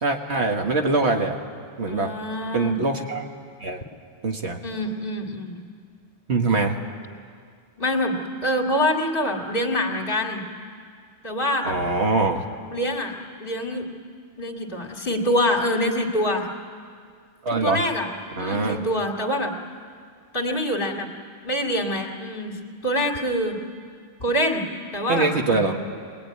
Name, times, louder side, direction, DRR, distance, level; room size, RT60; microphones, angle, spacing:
voice 1, 0.0-1.4 1.8-2.1 2.5-3.3 3.6-3.8 4.2-4.6 6.3-6.8 11.6-12.5 17.4-17.8 18.4-18.8 25.1-25.8, right 3 dB, 70° right, 3 dB, 1.7 m, -23 dB
voice 2, 1.9-2.8 4.6-5.6 7.8-8.2 8.4-10.4 11.2-11.8 12.7-13.9 14.4-16.5 17.5-18.1 18.3-19.6 20.3-21.1 21.4-23.6 24.2-25.8, left 1 dB, 50° left, 2 dB, 2.5 m, -25 dB
22.5 x 20.5 x 9.6 m, 2.2 s
omnidirectional pair, 1.1 m